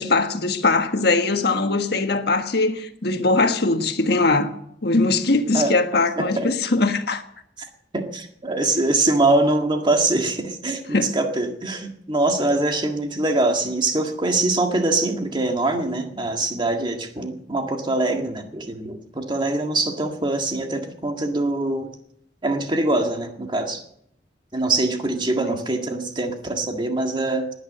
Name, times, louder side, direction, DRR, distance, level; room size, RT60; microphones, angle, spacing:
voice 1, 0.0-4.5 4.8-7.2 10.9-11.2, left 3 dB, 65° left, 1.5 m, -21 dB
voice 2, 6.2-6.5 7.9-21.9 22.4-23.8 24.5-27.5, right 2 dB, 25° right, 1.8 m, -23 dB
18.5 x 9.8 x 6.6 m
head